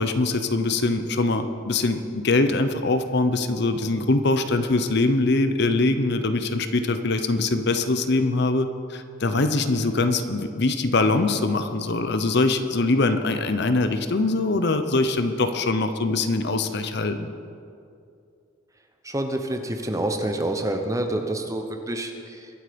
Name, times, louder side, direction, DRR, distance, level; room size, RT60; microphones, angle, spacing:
voice 1, 0.0-17.3, left 2 dB, 55° left, 9 dB, 0.8 m, -23 dB
voice 2, 19.0-22.5, right 1 dB, 15° right, 5 dB, 1.0 m, -27 dB
23.0 x 8.1 x 5.2 m, 2.4 s
head